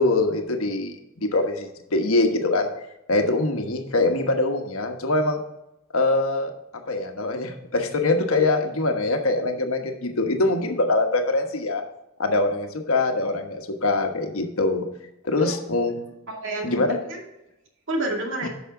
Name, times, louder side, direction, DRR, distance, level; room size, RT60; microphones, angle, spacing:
voice 1, 0.0-2.7 3.1-5.4 5.9-6.5 6.9-11.8 12.2-14.8 15.2-16.0 16.6-17.0 18.4-18.5, left 2 dB, 75° left, 4 dB, 1.2 m, -23 dB
voice 2, 15.3-15.8 16.3-17.3 17.9-18.5, right 1 dB, 60° right, 1 dB, 2.3 m, -30 dB
10.5 x 6.2 x 3.8 m, 0.90 s
head